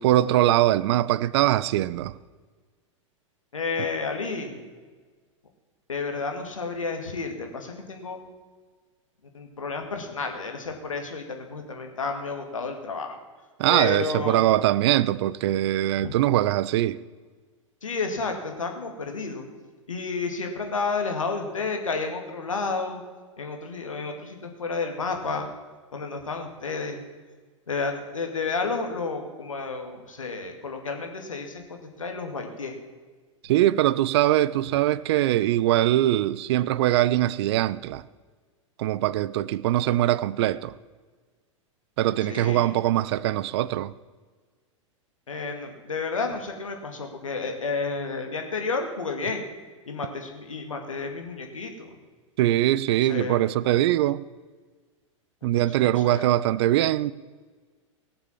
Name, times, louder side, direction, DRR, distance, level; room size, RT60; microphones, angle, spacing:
voice 1, 0.0-2.2 13.6-17.0 33.4-38.0 38.8-40.7 42.0-43.9 52.4-54.2 55.4-57.1, right 14 dB, 55° right, 0.5 m, -22 dB
voice 2, 3.5-4.6 5.9-8.2 9.3-13.2 13.7-14.5 16.0-16.1 17.8-19.4 19.9-23.0 23.4-25.5 25.9-27.0 27.7-32.7 42.2-42.8 45.3-49.4 49.9-51.9 52.9-53.5 55.4-56.3, left 4 dB, 80° left, 2.2 m, -31 dB
17.5 x 7.1 x 7.3 m
figure-of-eight pair, 95°, 17 cm